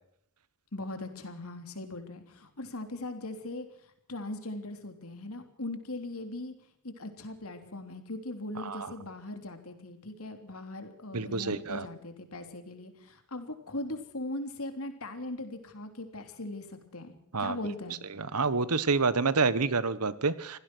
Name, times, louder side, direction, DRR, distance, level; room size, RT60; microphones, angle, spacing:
voice 1, 0.7-6.5 6.8-18.0, left 2 dB, 70° left, 7 dB, 3.3 m, -40 dB
voice 2, 11.1-11.9 17.3-17.6 18.2-20.6, right 4 dB, 90° right, 16 dB, 1.3 m, -28 dB
25.5 x 16.5 x 6.2 m, 0.69 s
head